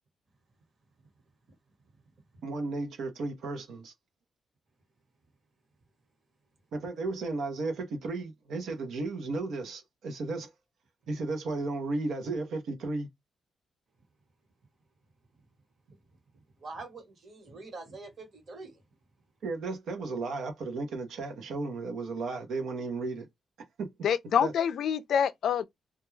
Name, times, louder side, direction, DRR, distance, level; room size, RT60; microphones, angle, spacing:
voice 1, 2.4-3.9 6.7-10.5 11.1-13.1 19.4-23.3 23.8-23.9 24.4-24.5, right 3 dB, 85° right, 0.7 m, -34 dB
voice 2, 16.6-18.8, right 3 dB, 55° right, 1.2 m, -45 dB
voice 3, 24.0-25.7, left 8 dB, 75° left, 0.3 m, -26 dB
2.2 x 2.2 x 3.1 m
cardioid pair, 100°, 0 cm